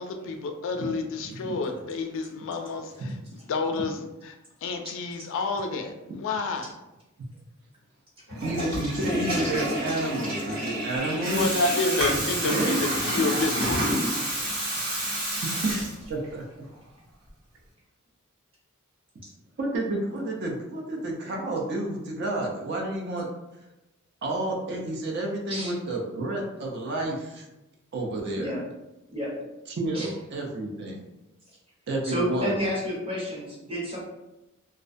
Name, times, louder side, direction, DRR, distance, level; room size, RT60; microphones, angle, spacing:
voice 1, 0.0-6.7 11.1-13.9, left 3 dB, 65° left, 5 dB, 0.3 m, -30 dB
Water tap faucet / Toilet flush, 8.3-16.3, right 1 dB, 80° right, 1.5 m, -28 dB
voice 2, 8.4-11.5 12.4-12.8 15.4-15.7 16.1-16.4 19.6-23.3 24.2-27.4 27.9-28.5 29.7-31.0 31.9-32.6, right 2 dB, 50° right, 0 dB, 0.4 m, -30 dB
voice 3, 32.0-34.0, equal, 25° right, -5 dB, 0.8 m, -30 dB
2.4 x 2.1 x 2.5 m, 0.97 s
head